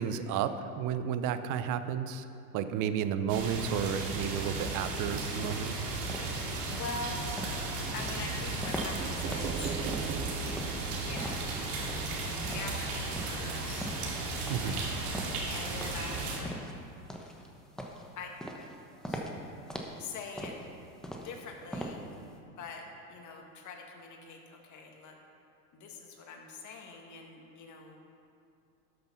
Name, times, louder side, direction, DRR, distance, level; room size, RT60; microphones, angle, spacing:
voice 1, 0.0-2.2 2.5-5.7 14.5-14.8, right 8 dB, 40° right, 11 dB, 0.7 m, -32 dB
sound 1, 3.3-16.4, right 2 dB, 70° right, 2.7 m, -35 dB
sound 2, 5.4-22.3, equal, ahead, 1.0 m, -42 dB
voice 2, 6.7-7.3 7.9-9.7 11.0-11.5 12.2-13.9 14.6-14.8 15.5-16.6 18.2-18.4 19.1-19.3 20.0-20.6 21.2-22.0 22.6-25.2 25.7-28.0, left 4 dB, 40° left, 1 dB, 1.9 m, -43 dB
sound 3, 9.0-12.7, right 6 dB, 20° right, 0.4 m, -39 dB
13.0 x 6.6 x 5.6 m, 2.5 s
hypercardioid pair, 110°, 46 cm